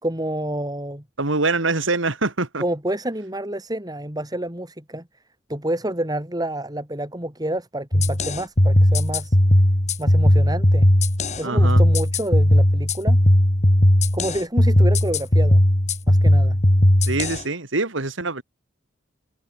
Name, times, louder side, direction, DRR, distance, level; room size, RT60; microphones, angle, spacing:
voice 1, 0.0-1.0 2.6-5.1 5.5-9.4 10.0-10.9 11.4-13.2 14.1-15.6 16.1-16.6, right 1 dB, 20° right, 4.5 m, -28 dB
voice 2, 1.2-2.6 11.4-11.8 17.1-18.4, right 3 dB, 90° right, 2.6 m, -24 dB
sound 1, 7.9-17.4, left 1 dB, 35° left, 2.6 m, -17 dB
head